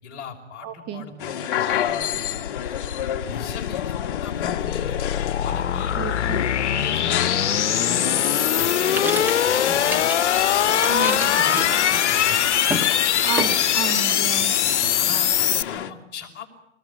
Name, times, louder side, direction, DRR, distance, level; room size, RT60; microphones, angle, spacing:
voice 1, 0.0-2.8 3.2-5.0 5.4-8.2 8.6-10.1 10.6-12.5 14.1-14.2 14.9-16.5, left 5 dB, 30° left, 0 dB, 5.3 m, -38 dB
voice 2, 0.6-1.1 6.0-6.4 10.9-11.3 13.2-14.5, right 9 dB, 30° right, 9 dB, 1.3 m, -31 dB
sound 1, 1.2-15.9, left 10 dB, 45° left, 1.6 m, -30 dB
sound 2, 1.9-15.6, left 10 dB, 75° left, 1.0 m, -22 dB
sound 3, 7.7-10.4 10.6-12.3 12.6-12.9 13.4-14.3 14.5-15.3, right 1 dB, 5° right, 1.5 m, -32 dB
25.5 x 20.5 x 8.6 m, 0.84 s
hypercardioid pair, 145°, 35 cm